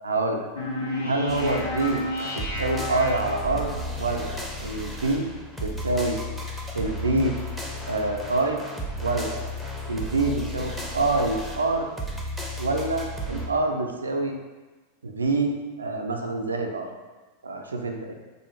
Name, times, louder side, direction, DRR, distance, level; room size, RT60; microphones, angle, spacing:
voice 1, 0.0-0.5 1.0-2.0 2.3-3.7 4.0-4.3 4.6-5.3 5.6-6.2 6.7-7.4 7.9-8.6 9.0-9.4 9.9-11.9 12.6-14.4 15.0-16.9 17.4-18.1, right 2 dB, 75° right, 3 dB, 0.3 m, -26 dB
sound 1, 0.6-3.8, left 1 dB, 75° left, 0.6 m, -31 dB
sound 2, 1.3-13.5, left 1 dB, 5° right, 0.5 m, -34 dB
2.5 x 2.4 x 2.9 m, 1.2 s
figure-of-eight pair, 90°, 0 cm